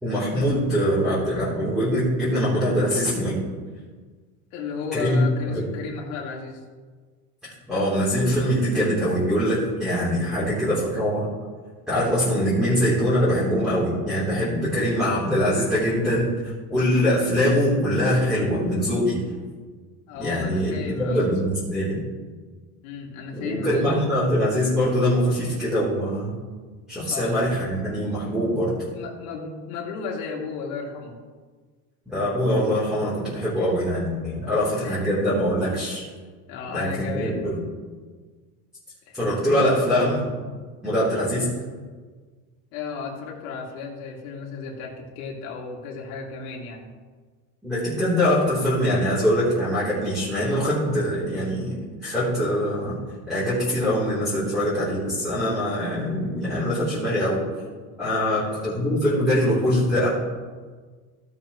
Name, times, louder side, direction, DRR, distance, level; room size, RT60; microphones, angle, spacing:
voice 1, 0.0-3.4 4.9-5.2 5.5-5.7 7.4-11.3 11.9-19.2 20.2-22.0 23.3-26.3 26.9-28.8 32.1-36.1 36.7-37.6 39.1-40.3 40.8-41.5 47.6-51.8 52.0-53.0 53.3-57.4 58.0-60.1, equal, ahead, -10 dB, 3.4 m, -23 dB
voice 2, 4.5-6.6 20.1-21.2 22.8-23.9 27.1-27.4 28.2-28.3 28.9-31.2 33.5-33.9 34.4-35.0 36.5-37.5 39.1-39.2 42.7-46.9 58.0-58.5, left 5 dB, 80° left, -2 dB, 2.7 m, -34 dB
16.5 x 6.9 x 3.1 m, 1.5 s
cardioid pair, 150°, 42 cm